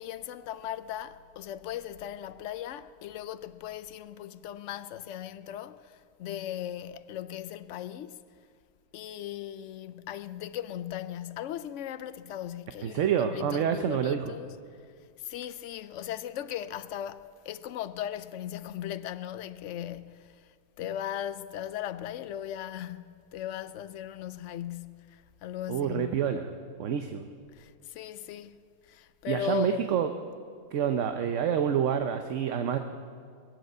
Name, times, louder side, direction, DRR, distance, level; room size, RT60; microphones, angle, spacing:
voice 1, 0.0-8.2 8.9-14.5 15.2-26.2 27.5-28.6 28.8-29.9, left 10 dB, 70° left, 0.7 m, -38 dB
voice 2, 12.8-14.3 25.7-26.5 26.8-27.3 29.3-30.1 30.7-32.8, right 8 dB, 60° right, 0.9 m, -27 dB
21.0 x 8.0 x 8.0 m
omnidirectional pair, 1.6 m